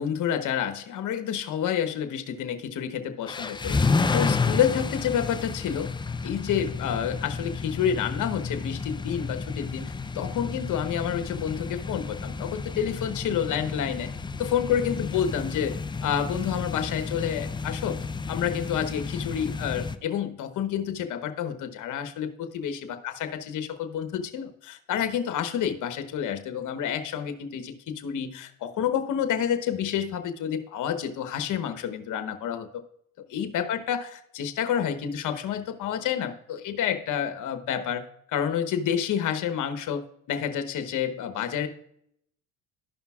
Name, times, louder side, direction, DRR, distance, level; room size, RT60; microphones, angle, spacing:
voice 1, 0.0-3.8 4.1-5.9 6.2-14.1 14.4-15.8 16.0-18.0 18.3-32.8 33.3-38.0 38.3-40.0 40.3-41.7, left 9 dB, 55° left, 8 dB, 1.1 m, -29 dB
sound 1, 3.3-19.9, left 4 dB, 15° left, 0.4 m, -31 dB
12.5 x 5.5 x 2.4 m, 0.70 s
supercardioid pair, 75°, 36 cm